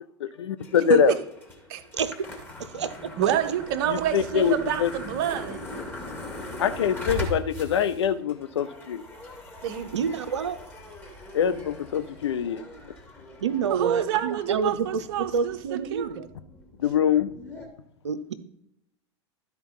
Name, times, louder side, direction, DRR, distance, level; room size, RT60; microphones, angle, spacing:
voice 1, 0.2-1.1 3.9-4.5 4.8-4.9 6.6-9.0 11.3-12.6 16.8-17.3, left 8 dB, 70° left, 12 dB, 0.6 m, -24 dB
sound 1, 0.6-17.7, left 1 dB, 15° left, 2.2 m, -40 dB
voice 2, 2.6-3.1 9.9-10.6 13.4-16.3 18.0-18.3, right 6 dB, 75° right, 13 dB, 0.7 m, -28 dB
voice 3, 3.2-5.6 9.6-9.9 13.6-15.6 15.9-16.1, right 10 dB, 50° right, 9 dB, 0.9 m, -27 dB
12.0 x 4.5 x 5.4 m, 0.80 s
figure-of-eight pair, 90°, 15 cm